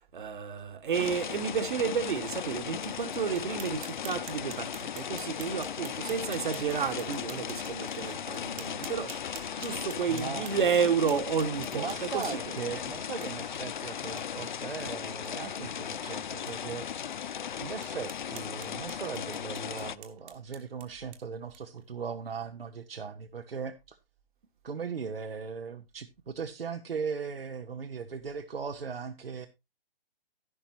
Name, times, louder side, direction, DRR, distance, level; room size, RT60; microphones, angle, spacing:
voice 1, 0.1-12.4, right 6 dB, 55° right, 1.6 m, -31 dB
sound 1, 0.9-20.0, left 8 dB, 55° left, 0.5 m, -37 dB
sound 2, 3.3-12.6 13.2-13.3 13.7-13.8 14.2-14.3 14.6-14.7 15.1-15.3 15.8-15.9 16.5-16.6 17.1-17.2 17.8-21.8, right 10 dB, 20° right, 1.2 m, -50 dB
voice 2, 10.1-10.5 11.7-16.9 17.6-24.0 24.6-29.5, right 6 dB, 75° right, 1.0 m, -38 dB
11.5 x 11.0 x 2.9 m
figure-of-eight pair, 135°, 30 cm